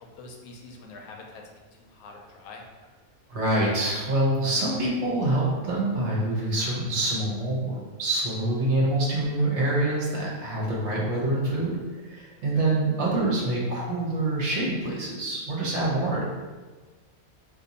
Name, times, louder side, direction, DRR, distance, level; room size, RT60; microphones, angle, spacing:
voice 1, 0.0-1.4 1.8-2.6 12.5-12.7, left 3 dB, 80° left, 1 dB, 1.0 m, -45 dB
voice 2, 3.3-16.2, right 2 dB, 60° right, -4 dB, 0.9 m, -26 dB
2.6 x 2.6 x 4.0 m, 1.3 s
omnidirectional pair, 1.5 m